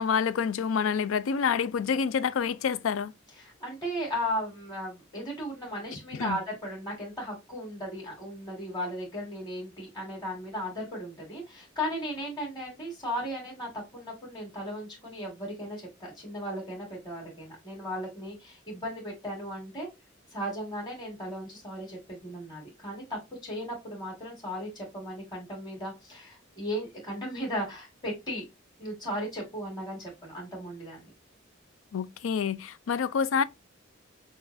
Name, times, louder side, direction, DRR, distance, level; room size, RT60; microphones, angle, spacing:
voice 1, 0.0-3.1 6.1-6.4 31.9-33.4, left 6 dB, 80° left, 0.4 m, -27 dB
voice 2, 3.4-19.9 20.3-28.4 28.8-31.1, equal, 20° left, 1.9 m, -36 dB
6.0 x 2.6 x 2.5 m
head